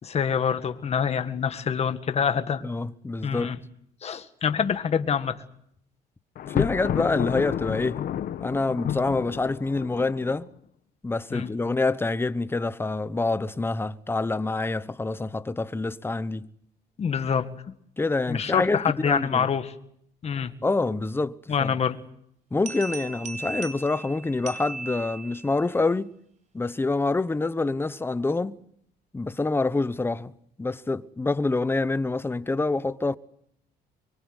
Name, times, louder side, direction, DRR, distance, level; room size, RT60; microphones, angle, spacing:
voice 1, 0.0-2.6 3.2-3.6 4.0-5.4 11.3-11.5 17.0-17.5 18.3-19.7 20.2-20.5 21.5-22.0, left 7 dB, 40° left, 1.8 m, -26 dB
voice 2, 2.6-3.5 6.5-8.0 8.4-10.5 11.0-16.5 18.0-19.5 20.6-21.8 22.5-26.1 26.5-28.6 29.1-30.3 30.6-33.2, left 3 dB, 15° left, 1.0 m, -26 dB
Thunder, 6.4-10.5, left 10 dB, 60° left, 1.3 m, -30 dB
sound 1, 22.7-25.6, right 3 dB, 45° right, 4.1 m, -37 dB
24.0 x 23.5 x 8.1 m
cardioid pair, 110°, 17 cm